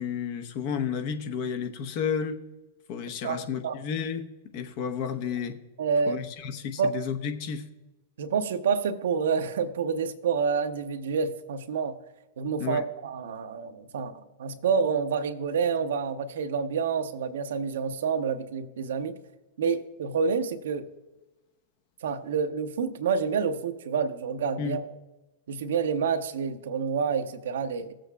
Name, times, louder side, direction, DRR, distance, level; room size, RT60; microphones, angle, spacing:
voice 1, 0.0-2.4 2.9-5.6 6.1-7.7 12.6-12.8 24.6-24.8, left 7 dB, 55° left, 6 dB, 0.9 m, -32 dB
voice 2, 3.2-3.8 5.8-6.2 6.8-7.0 8.2-11.9 12.4-19.2 19.6-20.9 22.0-24.8 25.5-27.9, right 6 dB, 75° right, 8 dB, 0.7 m, -28 dB
18.5 x 7.6 x 2.3 m, 1.1 s
hypercardioid pair, 110°, 0 cm